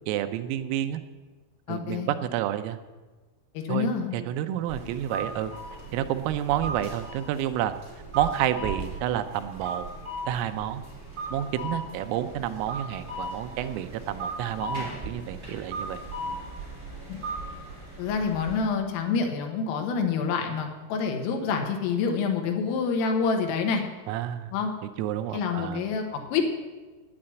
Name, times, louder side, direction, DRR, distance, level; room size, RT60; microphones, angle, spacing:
voice 1, 0.1-1.0 1.7-2.8 3.7-5.5 5.9-7.8 8.1-9.9 10.3-10.8 11.3-16.0 16.3-16.4 24.1-24.5 25.0-25.8, right 11 dB, 90° right, 9 dB, 3.4 m, -29 dB
voice 2, 1.7-2.1 3.6-4.1 17.1-17.2 18.0-23.8 24.5-24.7 25.3-26.4, left 5 dB, 85° left, 3 dB, 4.1 m, -27 dB
sound 1, 4.7-18.6, right 1 dB, 15° right, 3.4 m, -37 dB
9.9 x 9.7 x 9.0 m, 1.3 s
omnidirectional pair, 5.8 m